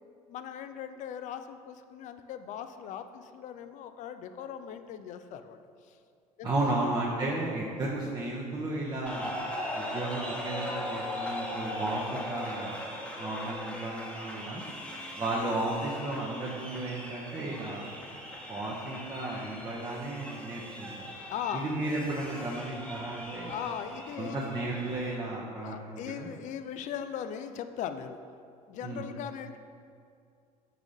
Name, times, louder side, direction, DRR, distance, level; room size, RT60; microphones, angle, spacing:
voice 1, 0.3-6.0 6.4-6.9 11.2-11.5 21.3-21.7 23.4-24.4 25.6-28.2 28.7-29.6, left 9 dB, 40° left, 9 dB, 0.4 m, -39 dB
voice 2, 6.4-9.4 9.7-12.8 13.1-14.6 15.2-18.1 18.5-21.1 21.5-23.5 24.2-26.3 28.8-29.0, right 2 dB, 20° right, -5 dB, 0.8 m, -34 dB
sound 1, 9.1-25.1, equal, 5° left, 1.1 m, -39 dB
5.5 x 3.7 x 4.8 m, 2.4 s
figure-of-eight pair, 65°, 20 cm